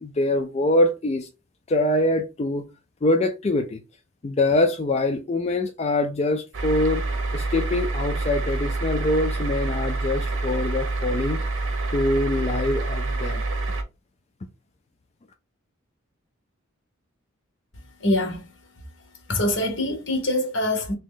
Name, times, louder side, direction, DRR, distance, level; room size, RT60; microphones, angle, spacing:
voice 1, 0.0-1.3 1.7-2.7 3.0-3.8 4.2-7.0 7.3-11.4 11.9-13.4, left 2 dB, 30° left, 0.3 m, -24 dB
sound 1, 6.5-13.8, right 2 dB, 70° right, 0.8 m, -27 dB
voice 2, 18.0-18.5 19.3-20.9, left 1 dB, 65° left, 1.2 m, -24 dB
3.0 x 2.8 x 3.8 m
head